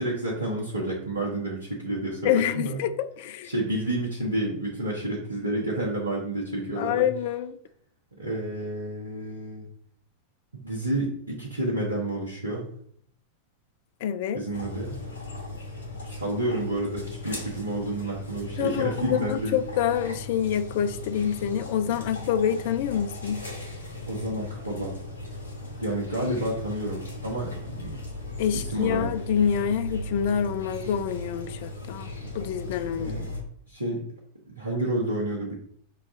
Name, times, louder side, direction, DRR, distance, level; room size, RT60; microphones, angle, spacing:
voice 1, 0.0-2.8 3.4-7.1 8.2-9.7 10.5-12.7 14.3-14.9 16.0-19.6 24.1-25.0 25.7-28.0 28.5-29.1 33.0-33.3 33.7-34.1 34.5-35.6, right 1 dB, 80° right, 0.8 m, -30 dB
voice 2, 2.2-2.9 3.2-3.5 6.8-7.6 14.0-14.4 18.6-23.4 28.4-33.2, left 9 dB, 50° left, 0.3 m, -27 dB
sound 1, 14.5-33.4, left 2 dB, 70° left, 1.6 m, -37 dB
5.6 x 2.4 x 3.7 m
figure-of-eight pair, 90°, 0 cm